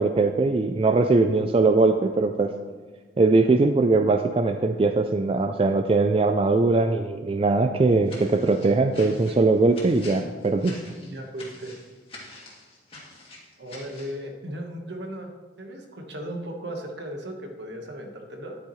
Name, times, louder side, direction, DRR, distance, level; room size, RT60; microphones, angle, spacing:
voice 1, 0.0-2.5 3.2-10.8, right 3 dB, 30° right, 7 dB, 0.3 m, -21 dB
sound 1, 8.0-14.2, left 2 dB, 30° left, 2.0 m, -45 dB
voice 2, 11.0-11.8 13.6-15.3 15.6-18.6, right 1 dB, 70° right, 3 dB, 1.4 m, -36 dB
11.0 x 8.3 x 3.1 m, 1.5 s
head